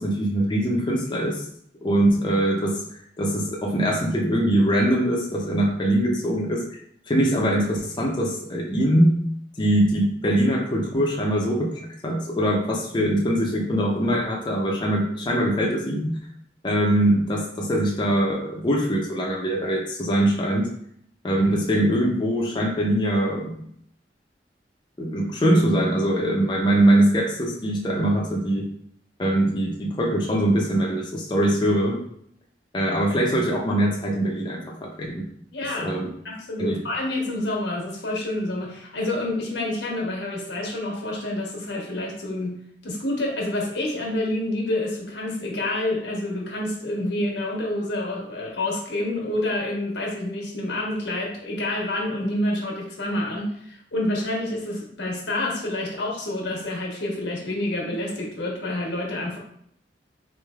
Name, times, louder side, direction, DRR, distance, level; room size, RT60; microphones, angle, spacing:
voice 1, 0.0-1.4 1.8-2.8 3.2-6.8 7.1-9.3 9.6-16.2 16.6-20.7 21.2-23.5 25.0-28.7 29.2-32.0 32.7-35.2 35.8-36.1 36.6-36.8, right 1 dB, 25° left, -1 dB, 0.5 m, -22 dB
voice 2, 35.5-36.0 36.2-42.6 42.8-59.4, left 1 dB, 90° left, -1 dB, 1.0 m, -28 dB
3.8 x 3.1 x 2.3 m, 0.68 s
head